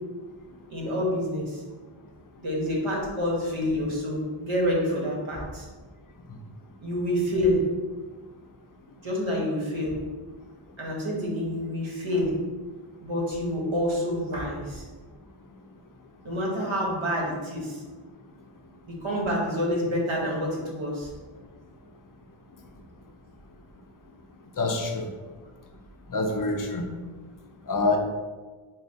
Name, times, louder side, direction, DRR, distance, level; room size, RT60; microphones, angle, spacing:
voice 1, 0.7-1.6 2.4-5.7 6.8-7.7 9.0-10.0 10.8-12.4 13.0-14.8 16.2-17.8 18.9-21.1, equal, 70° right, -3 dB, 0.9 m, -27 dB
voice 2, 24.6-25.1 26.1-26.9 27.7-28.0, left 2 dB, 40° left, 3 dB, 0.5 m, -26 dB
3.3 x 2.1 x 4.0 m, 1.4 s
wide cardioid pair, 50°, 50 cm